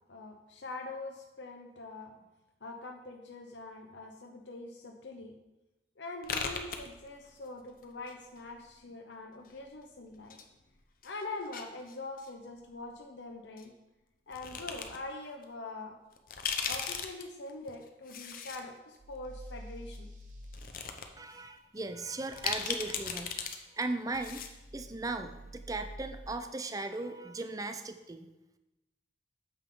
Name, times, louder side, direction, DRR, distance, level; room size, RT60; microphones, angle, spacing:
voice 1, 0.1-2.1 2.6-5.3 6.0-10.4 11.0-13.7 14.3-16.0 16.7-20.1, left 2 dB, 90° left, 2 dB, 0.8 m, -44 dB
sound 1, 6.2-7.5 7.7-8.7 9.4-10.5 10.8-12.3 13.6-13.7 14.3-15.0 15.4-15.5 16.1-18.6 19.0-19.1 19.9-20.0 20.4-21.0 21.4-21.5 22.3-23.5 23.8-23.9 24.1-24.6, left 6 dB, 50° left, 0.8 m, -37 dB
sound 2, 19.0-20.6 24.1-26.2, right 1 dB, 45° right, 1.2 m, -48 dB
voice 2, 21.2-24.4 24.7-28.3, right 2 dB, 20° right, 8 dB, 0.5 m, -37 dB
9.0 x 7.1 x 3.8 m, 0.99 s
head